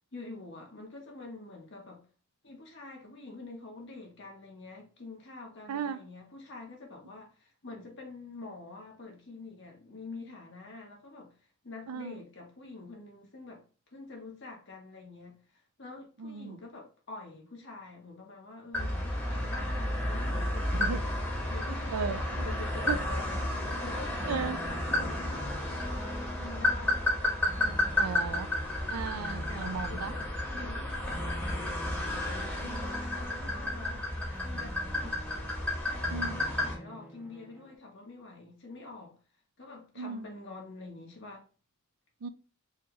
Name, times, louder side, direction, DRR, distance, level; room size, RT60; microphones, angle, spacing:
voice 1, 0.1-2.0 2.4-11.3 11.6-13.6 13.9-21.1 21.5-22.2 22.4-23.5 23.8-25.7 26.4-27.1 27.5-28.8 29.5-31.5 32.2-34.1 34.4-35.3 35.7-39.1 39.6-41.4, left 3 dB, 55° left, 1.2 m, -46 dB
voice 2, 5.7-6.0 11.9-12.2 16.2-16.6 20.7-21.0 21.9-22.5 22.9-23.0 24.3-24.6 28.0-28.5 28.9-30.1 32.6-32.8 36.1-36.4 40.0-40.2 42.2-42.3, right 6 dB, 90° right, 0.4 m, -35 dB
sound 1, 18.7-36.8, left 1 dB, 10° left, 1.1 m, -32 dB
sound 2, 24.2-37.8, equal, 10° right, 0.7 m, -47 dB
4.3 x 2.4 x 3.1 m
head